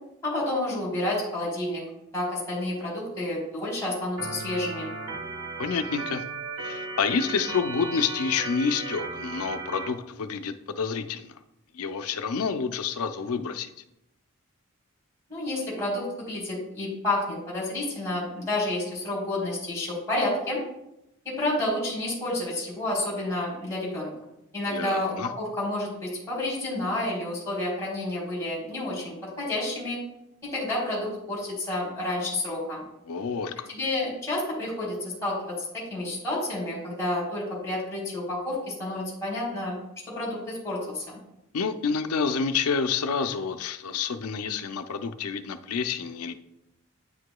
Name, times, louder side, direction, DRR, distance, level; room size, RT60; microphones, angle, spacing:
voice 1, 0.2-1.8 2.1-4.9 15.3-20.6 21.3-24.1 24.5-30.0 30.4-32.8 33.7-39.8 40.1-41.2, left 1 dB, 15° left, -5 dB, 2.0 m, -30 dB
Organ, 4.2-9.9, right 3 dB, 80° right, 1.3 m, -35 dB
voice 2, 5.6-6.2 6.6-11.4 11.7-13.7 24.7-25.3 33.1-33.7 41.5-46.3, left 5 dB, 85° left, 9 dB, 0.5 m, -28 dB
9.3 x 4.8 x 2.2 m, 0.85 s
head